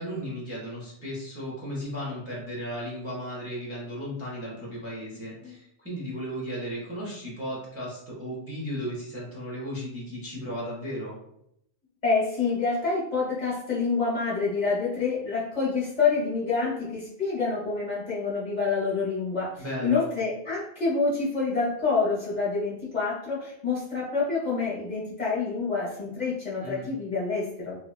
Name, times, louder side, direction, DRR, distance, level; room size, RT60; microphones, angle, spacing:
voice 1, 0.0-11.2 19.6-20.1 26.6-26.9, equal, 15° right, -6 dB, 0.6 m, -35 dB
voice 2, 5.1-5.6 12.0-27.8, left 4 dB, 45° left, -7 dB, 0.8 m, -27 dB
2.8 x 2.2 x 2.2 m, 0.74 s
omnidirectional pair, 1.2 m